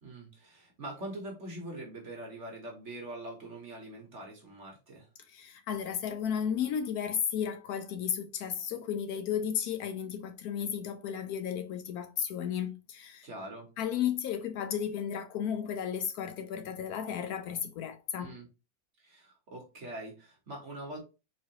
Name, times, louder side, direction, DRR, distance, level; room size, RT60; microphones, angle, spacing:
voice 1, 0.0-5.1 13.2-13.7 18.2-18.5 19.0-21.0, right 1 dB, 45° right, 1.2 m, -43 dB
voice 2, 5.3-13.3 13.8-18.4, left 8 dB, 75° left, 0.8 m, -34 dB
4.2 x 4.1 x 2.9 m
omnidirectional pair, 2.1 m